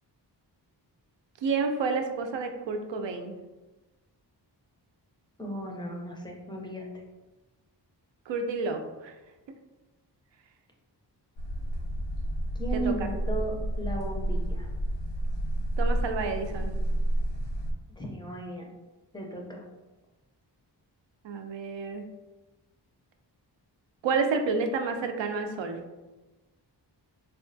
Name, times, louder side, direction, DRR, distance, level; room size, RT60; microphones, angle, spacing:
voice 1, 1.4-3.3 8.3-9.1 12.7-13.1 15.8-16.7 21.2-22.0 24.0-25.8, right 4 dB, 85° right, 6 dB, 0.5 m, -30 dB
voice 2, 5.4-7.0 12.5-14.7 18.0-18.7 19.1-19.6, right 2 dB, 10° left, -1 dB, 0.4 m, -35 dB
sound 1, 11.4-17.7, right 1 dB, 80° left, 0.6 m, -30 dB
4.1 x 2.3 x 2.5 m, 1.1 s
wide cardioid pair, 170°, 43 cm